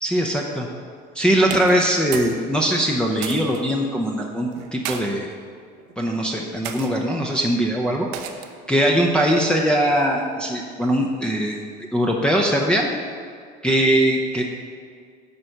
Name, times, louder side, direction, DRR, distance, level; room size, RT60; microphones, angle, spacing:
voice 1, 0.0-0.7 1.1-5.3 6.0-8.1 8.7-11.7 11.9-12.9 13.6-14.4, equal, 5° left, -2 dB, 0.8 m, -21 dB
sound 1, 1.4-2.4 2.7-3.6 4.5-5.0 5.8-6.0 6.6-6.9 8.1-8.6, right 9 dB, 75° right, 0.9 m, -33 dB
9.6 x 4.4 x 6.6 m, 2.1 s
supercardioid pair, 100°, 21 cm